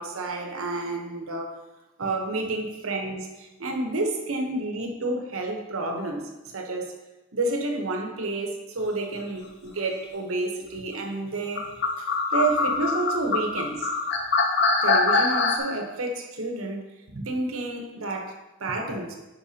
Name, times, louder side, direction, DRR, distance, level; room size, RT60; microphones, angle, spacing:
voice 1, 0.0-1.6 2.0-7.0 7.3-11.6 12.0-13.9 14.8-19.1, right 2 dB, 80° right, 3 dB, 0.9 m, -30 dB
sound 1, 11.6-15.6, left 3 dB, 55° left, 0.7 m, -23 dB
10.0 x 4.5 x 2.8 m, 1.1 s
head